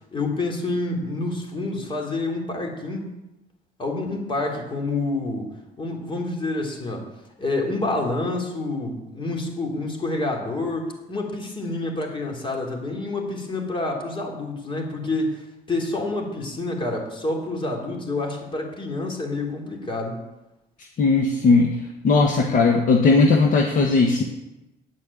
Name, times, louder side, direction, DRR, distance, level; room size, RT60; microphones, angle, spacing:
voice 1, 0.1-3.1 3.8-5.5 5.8-7.1 7.4-15.4 15.7-20.2, left 2 dB, 30° left, 1 dB, 3.5 m, -28 dB
voice 2, 21.0-24.2, left 3 dB, 50° left, 2 dB, 1.4 m, -18 dB
9.8 x 8.7 x 8.5 m, 0.96 s
cardioid pair, 110°, 17 cm